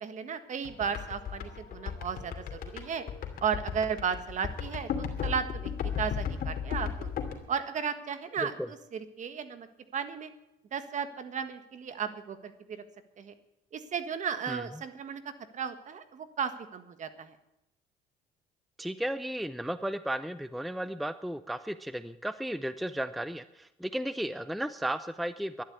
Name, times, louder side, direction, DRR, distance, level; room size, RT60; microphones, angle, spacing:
voice 1, 0.0-3.0 3.4-5.4 6.0-7.1 7.5-8.5 8.9-9.7 9.9-10.3 10.7-12.8 13.2-13.3 13.7-15.2 15.5-17.3, right 7 dB, 45° right, 10 dB, 1.5 m, -34 dB
sound 1, 0.6-7.3, left 8 dB, 60° left, 2.7 m, -34 dB
voice 2, 18.8-25.6, right 1 dB, ahead, 13 dB, 0.5 m, -34 dB
12.0 x 11.5 x 8.3 m, 0.90 s
cardioid pair, 110°, 17 cm